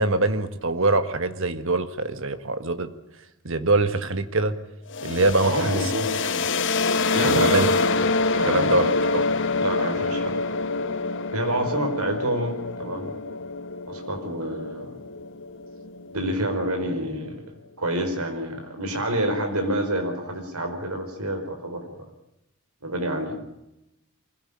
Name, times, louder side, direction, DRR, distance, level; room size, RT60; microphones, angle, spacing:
voice 1, 0.0-2.9 3.4-4.6 5.0-5.9 7.2-7.7 8.5-9.2, right 2 dB, 60° right, 10 dB, 1.6 m, -23 dB
sound 1, 4.9-16.6, left 3 dB, 55° left, 1.1 m, -26 dB
voice 2, 5.4-6.2 7.1-7.8 8.3-8.8 9.6-10.6 11.3-13.1 13.8-15.0 16.1-17.4 17.8-22.0 22.8-23.4, right 1 dB, 80° right, 6 dB, 4.7 m, -28 dB
24.0 x 16.5 x 8.6 m, 0.88 s
head